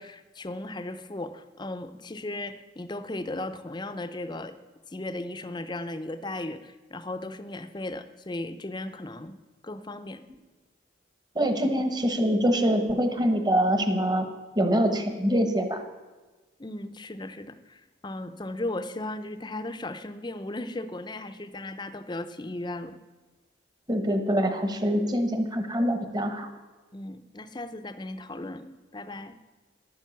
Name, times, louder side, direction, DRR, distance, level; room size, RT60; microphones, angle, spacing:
voice 1, 0.0-4.6 4.9-9.4 9.6-10.2 16.6-23.0 26.9-29.3, left 2 dB, 20° left, 10 dB, 0.6 m, -36 dB
voice 2, 11.3-14.3 14.6-15.8 23.9-26.5, equal, 20° right, 7 dB, 1.1 m, -24 dB
11.5 x 9.2 x 7.1 m, 1.2 s
head